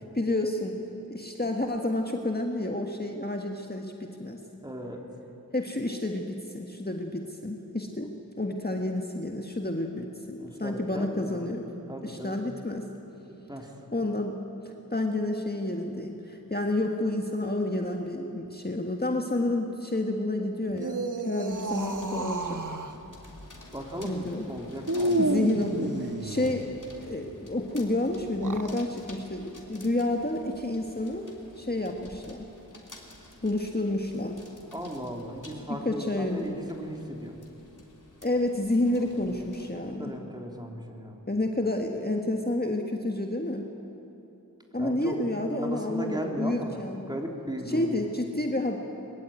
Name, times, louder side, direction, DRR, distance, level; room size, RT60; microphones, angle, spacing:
voice 1, 0.1-0.8 1.1-4.4 5.5-11.7 12.0-12.9 13.9-14.4 14.9-22.6 24.0-24.5 25.2-26.7 27.1-31.3 31.6-32.5 33.4-34.4 35.8-36.5 38.2-40.1 41.3-43.7 44.7-47.0 47.7-48.8, left 1 dB, 25° left, 2 dB, 1.6 m, -30 dB
voice 2, 4.6-5.0 10.4-11.5 11.9-12.4 13.3-13.7 23.7-25.6 26.3-26.6 34.7-37.4 39.7-41.2 44.7-45.1 45.5-46.8 47.1-48.1, equal, 10° right, 1 dB, 3.3 m, -37 dB
sound 1, 20.7-23.0 24.8-26.6 28.2-28.8, right 2 dB, 60° right, 1.4 m, -30 dB
sound 2, 21.5-39.7, left 1 dB, 60° left, 3.4 m, -51 dB
22.0 x 21.5 x 9.0 m, 3.0 s
wide cardioid pair, 40°, 36 cm